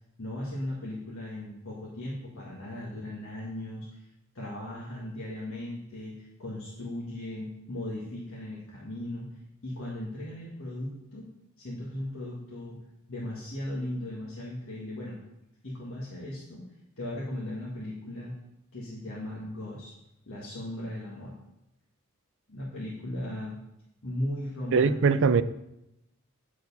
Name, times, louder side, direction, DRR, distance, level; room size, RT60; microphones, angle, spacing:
voice 1, 0.2-4.1 4.3-9.3 9.6-11.3 11.6-12.8 13.1-15.2 15.6-16.6 17.0-18.3 18.7-19.9 20.3-21.4 22.5-23.6 24.0-24.9, left 1 dB, 65° left, 1.7 m, -37 dB
voice 2, 24.7-25.4, right 5 dB, 60° right, 0.4 m, -21 dB
9.3 x 4.7 x 5.4 m
head